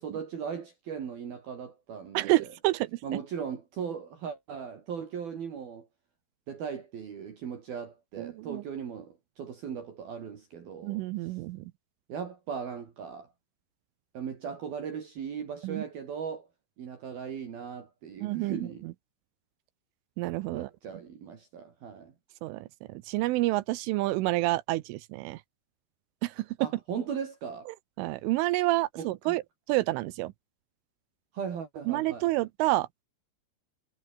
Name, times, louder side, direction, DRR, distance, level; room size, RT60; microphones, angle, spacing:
voice 1, 0.0-2.5 3.0-5.9 6.5-11.0 12.1-13.3 14.1-16.5 16.8-18.8 20.5-22.1 26.6-27.7 29.0-29.4 31.3-32.3, right 7 dB, 50° right, 4.4 m, -38 dB
voice 2, 2.1-3.0 8.2-8.6 10.8-11.7 15.6-15.8 18.2-18.6 20.2-20.7 22.4-25.4 26.2-26.5 28.0-29.4 29.7-30.3 31.9-33.0, right 18 dB, 85° right, 3.3 m, -29 dB
omnidirectional pair, 5.8 m